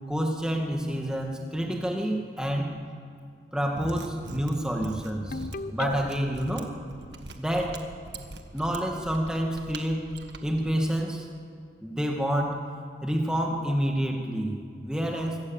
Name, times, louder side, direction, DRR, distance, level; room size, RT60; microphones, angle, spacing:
voice 1, 0.1-2.7 3.5-6.7 7.4-7.8 8.5-10.0 10.4-11.3 11.8-12.6 13.0-15.4, equal, 5° right, 1 dB, 2.1 m, -28 dB
Mechanisms, 3.7-10.8, right 2 dB, 75° right, 1.6 m, -42 dB
Ringtone, 5.3-6.5, left 3 dB, 45° left, 0.5 m, -35 dB
25.0 x 16.0 x 7.3 m, 2.2 s
head